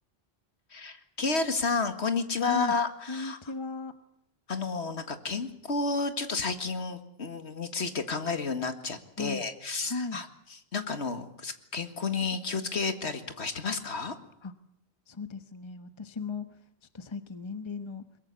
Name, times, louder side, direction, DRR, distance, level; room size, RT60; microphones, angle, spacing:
voice 1, 0.7-3.4 4.5-14.2, left 4 dB, 70° left, 9 dB, 2.2 m, -31 dB
voice 2, 3.1-4.0 9.2-9.4 9.8-10.2 14.4-14.5 15.1-16.6 16.9-18.0, left 4 dB, 25° left, 10 dB, 1.2 m, -36 dB
22.0 x 22.0 x 8.3 m, 0.73 s
omnidirectional pair, 1.2 m